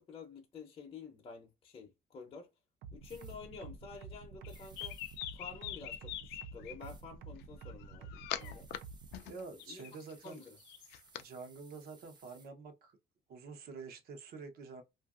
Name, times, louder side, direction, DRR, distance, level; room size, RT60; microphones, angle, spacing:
voice 1, 0.0-2.5 2.9-5.0 5.3-8.7 9.7-9.9 10.2-10.6, left 5 dB, 35° left, 0.7 m, -50 dB
sound 1, 2.8-9.2, right 5 dB, 85° right, 0.5 m, -49 dB
sound 2, 3.0-3.4 4.5-5.2 6.8-7.1 8.4-12.5, right 4 dB, 25° right, 0.6 m, -62 dB
sound 3, 4.4-6.8 7.6-8.8 9.1-11.2, left 13 dB, 85° left, 0.4 m, -43 dB
voice 2, 9.2-10.4 11.2-13.0 13.3-14.8, right 4 dB, 65° right, 0.8 m, -48 dB
2.7 x 2.5 x 2.4 m
cardioid pair, 110°, 17 cm